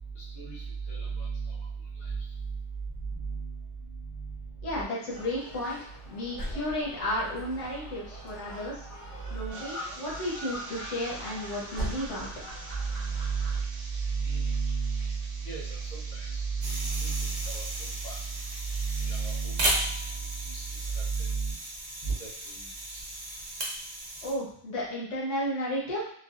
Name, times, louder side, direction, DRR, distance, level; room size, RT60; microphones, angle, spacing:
voice 1, 0.2-0.6 0.9-1.6 2.0-2.1 3.2-3.5 4.2-4.3 13.0-13.5 14.1-15.1 15.4-18.3 18.8-19.8 20.5-20.6 21.0-21.5 22.0-23.0, right 5 dB, 40° left, -6 dB, 0.8 m, -32 dB
voice 2, 4.6-8.9 9.3-12.3 24.2-26.1, left 1 dB, 85° left, -5 dB, 1.2 m, -33 dB
Gull seagull, 5.1-13.6, right 1 dB, 60° left, 1.5 m, -40 dB
sound 1, 9.5-19.4, right 2 dB, 65° right, 0.7 m, -47 dB
sound 2, 16.6-24.3, right 1 dB, 85° right, 1.1 m, -35 dB
3.1 x 2.1 x 2.5 m, 0.63 s
omnidirectional pair, 1.2 m